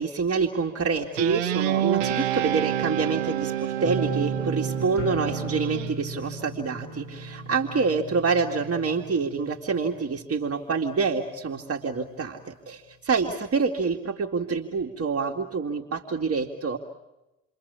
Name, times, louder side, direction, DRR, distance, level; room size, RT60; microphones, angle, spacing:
voice 1, 0.0-16.8, right 5 dB, 40° right, 2 dB, 2.4 m, -27 dB
Guitar, 1.2-5.9, right 12 dB, 85° right, 1.0 m, -28 dB
sound 1, 3.8-10.7 11.0-11.5 11.9-12.0, right 3 dB, 90° left, 3.5 m, -35 dB
29.5 x 23.5 x 7.1 m, 0.97 s
hypercardioid pair, 60°, 37 cm